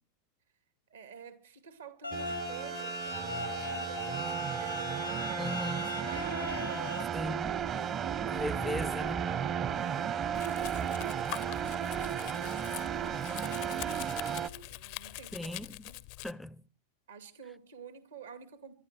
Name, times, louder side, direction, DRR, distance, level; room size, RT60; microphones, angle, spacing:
voice 1, 0.9-5.2 5.5-5.6 6.1-7.3 9.7-11.3 11.8-15.5 15.8-16.0 17.1-18.7, right 6 dB, 65° right, 2.5 m, -51 dB
sound 1, 2.0-7.0, left 2 dB, 85° left, 0.7 m, -38 dB
sound 2, 2.1-14.5, right 8 dB, 30° right, 1.1 m, -34 dB
voice 2, 5.4-6.0 7.1-7.6 8.2-9.4 15.3-15.8 16.2-16.6, left 1 dB, 5° left, 0.7 m, -38 dB
Domestic sounds home sounds, 10.3-16.3, left 21 dB, 45° left, 0.7 m, -44 dB
24.5 x 12.0 x 4.4 m
figure-of-eight pair, 90°, 0 cm